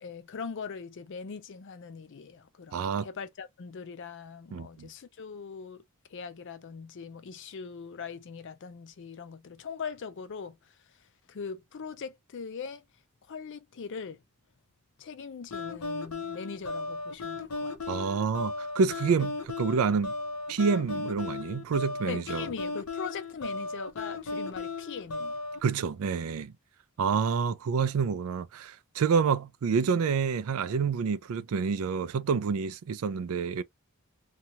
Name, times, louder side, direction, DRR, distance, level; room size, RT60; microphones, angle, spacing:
voice 1, 0.0-5.8 6.1-10.7 11.3-12.8 13.3-14.2 15.0-18.1 22.1-25.4, left 5 dB, 55° left, 0.4 m, -41 dB
voice 2, 2.7-3.1 4.5-4.9 17.9-20.1 20.5-22.5 25.6-26.5 27.0-33.6, right 5 dB, 65° right, 0.4 m, -28 dB
sound 1, 15.5-25.6, left 3 dB, 85° left, 0.8 m, -36 dB
2.7 x 2.3 x 2.8 m
head